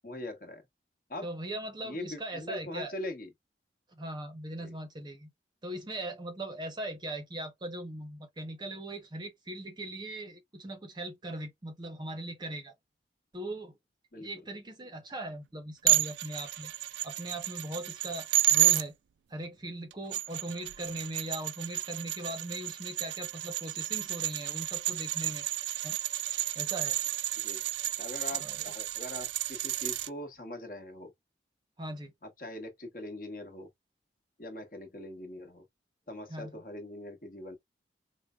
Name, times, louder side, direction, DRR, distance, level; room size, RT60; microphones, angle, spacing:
voice 1, 0.0-0.6 1.1-1.3 1.8-3.3 4.6-4.7 14.1-14.3 27.4-27.6 28.0-31.1 32.4-33.7 34.4-35.6 36.1-37.6, left 1 dB, 50° left, 1.1 m, -42 dB
voice 2, 1.2-2.9 3.9-5.3 5.6-12.7 13.3-13.7 14.2-16.7 17.0-18.9 19.3-25.5 25.8-26.0 26.6-27.0 28.4-28.7 31.8-32.1 36.3-36.6, right 1 dB, 25° right, 0.6 m, -39 dB
sound 1, 15.9-18.8 19.9-30.1, right 15 dB, 80° right, 0.3 m, -31 dB
4.7 x 2.1 x 2.2 m
head